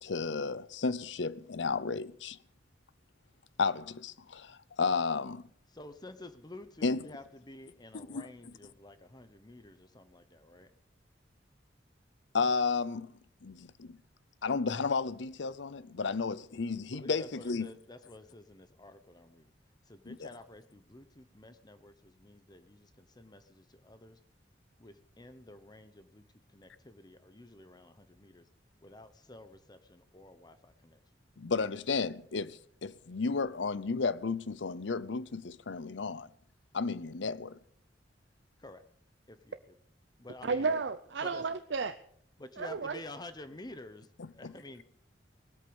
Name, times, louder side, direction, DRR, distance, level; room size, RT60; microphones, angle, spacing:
voice 1, 0.0-2.4 3.6-5.4 6.8-7.0 7.9-8.3 12.3-13.1 13.4-14.0 14.4-17.7 20.1-20.3 31.4-36.3 36.7-37.6 44.4-44.5, left 4 dB, 75° left, 0.7 m, -33 dB
voice 2, 5.7-10.7 16.9-19.5 19.9-24.2 24.8-28.5 28.8-31.0 38.6-38.8 39.3-39.8 40.2-40.7 41.2-41.5 42.4-44.8, left 2 dB, 25° left, 1.0 m, -50 dB
voice 3, 40.4-41.9 42.6-43.0, right 4 dB, 70° right, 0.6 m, -32 dB
19.5 x 8.4 x 7.1 m
head